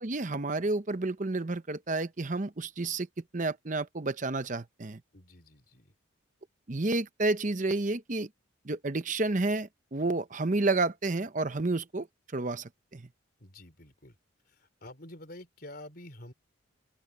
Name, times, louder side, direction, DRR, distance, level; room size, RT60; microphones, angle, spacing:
voice 1, 0.0-3.1 3.3-5.0 6.7-8.3 8.6-12.1 12.3-13.1, right 2 dB, 35° right, 0.8 m, -30 dB
voice 2, 5.1-5.9 13.4-14.2 14.5-16.3, left 1 dB, 45° left, 3.9 m, -48 dB
open air
head